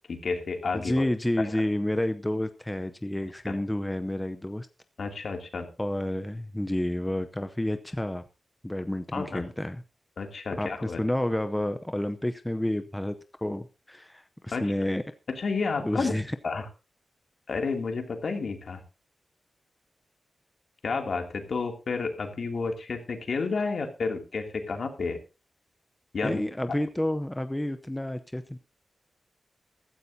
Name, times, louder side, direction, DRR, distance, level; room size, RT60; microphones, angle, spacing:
voice 1, 0.1-1.0 1.4-1.5 3.5-3.6 5.0-5.7 9.1-9.5 10.2-11.0 14.5-14.7 15.3-16.1 16.4-16.7 17.5-18.8 20.8-25.2 26.1-26.4, left 4 dB, 60° left, 5 dB, 2.6 m, -31 dB
voice 2, 0.7-4.7 5.8-8.2 8.6-9.8 10.6-13.2 13.4-15.0 15.8-16.4 26.2-28.6, left 1 dB, 10° left, 9 dB, 0.7 m, -30 dB
15.0 x 14.0 x 2.7 m, 0.30 s
wide cardioid pair, 160°, 0 cm